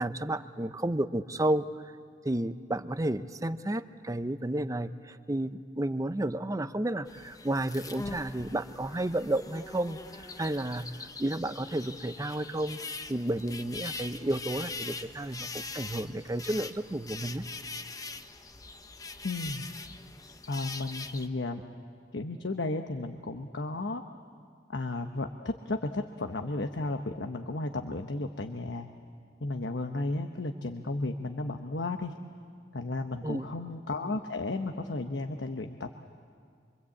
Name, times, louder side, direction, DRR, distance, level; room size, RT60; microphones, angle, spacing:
voice 1, 0.0-1.9 2.2-12.8 13.1-17.5 33.2-33.5, right 1 dB, 20° right, 12 dB, 0.6 m, -32 dB
sound 1, 7.1-21.3, left 3 dB, 20° left, 0.9 m, -42 dB
voice 2, 19.2-19.7 20.5-21.6 22.1-24.0 24.7-28.9 29.4-32.1 32.7-36.0, left 2 dB, 90° left, 6 dB, 1.0 m, -34 dB
25.5 x 25.0 x 8.5 m, 2.2 s
head